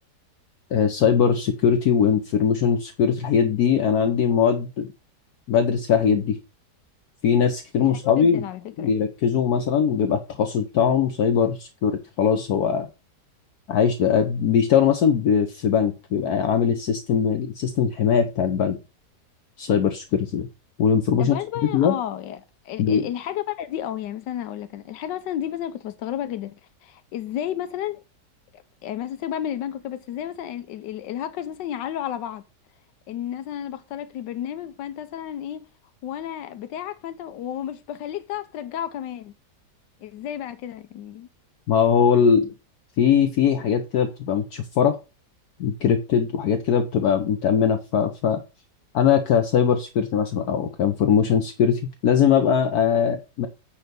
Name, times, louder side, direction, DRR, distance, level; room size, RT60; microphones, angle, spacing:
voice 1, 0.7-4.9 5.5-6.4 7.2-8.4 8.8-12.9 13.7-18.8 19.6-20.5 20.8-21.4 21.6-21.9 22.8-23.1 41.7-42.5 43.0-45.0 45.6-48.4 48.9-53.5, left 7 dB, 65° left, 1.4 m, -21 dB
voice 2, 7.8-8.9 21.2-26.6 26.8-28.0 28.5-32.4 33.1-35.7 36.0-39.3 40.0-41.3, left 11 dB, 90° left, 1.4 m, -32 dB
10.0 x 3.4 x 6.8 m
omnidirectional pair, 1.8 m